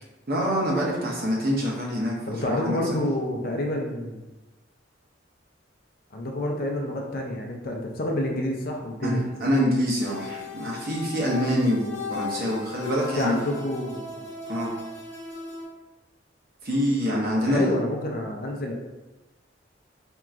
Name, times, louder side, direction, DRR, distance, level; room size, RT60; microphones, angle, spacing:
voice 1, 0.3-2.1 2.5-2.8 9.0-13.4 14.5-14.7 16.6-17.8, equal, 55° right, -3 dB, 0.9 m, -25 dB
voice 2, 2.3-4.2 6.1-9.2 13.2-14.1 17.4-18.7, left 1 dB, 50° left, 1 dB, 0.5 m, -28 dB
sound 1, 10.0-15.6, left 4 dB, 70° left, 0.9 m, -37 dB
4.5 x 2.9 x 2.5 m, 1.1 s
head